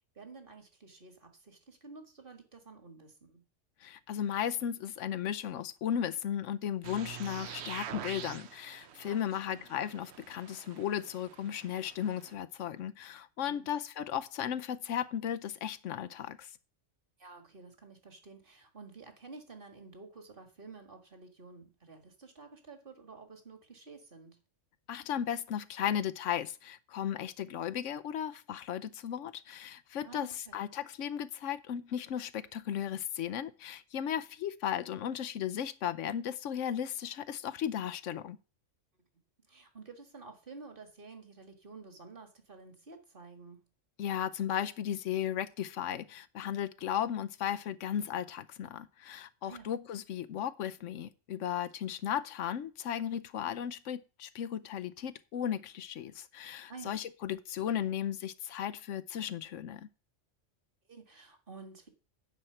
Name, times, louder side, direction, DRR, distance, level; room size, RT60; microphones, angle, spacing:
voice 1, 0.2-3.4 9.0-9.7 13.4-13.7 17.2-24.4 30.0-30.6 39.5-43.6 49.4-49.7 56.7-57.0 60.9-61.9, right 4 dB, 45° right, 1.9 m, -51 dB
voice 2, 3.8-16.5 24.9-38.4 44.0-59.9, left 9 dB, 85° left, 1.0 m, -35 dB
sound 1, 6.8-12.3, right 9 dB, 65° right, 0.9 m, -46 dB
10.0 x 4.4 x 7.8 m
omnidirectional pair, 1.3 m